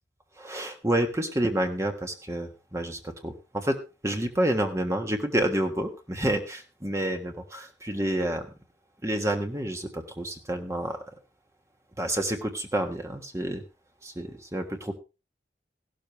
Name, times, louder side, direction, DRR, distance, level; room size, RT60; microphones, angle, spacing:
voice 1, 0.4-3.8 4.0-8.5 9.0-11.0 12.0-13.6 14.0-14.9, right 1 dB, 15° right, 5 dB, 1.5 m, -29 dB
15.5 x 12.5 x 3.2 m, 0.29 s
head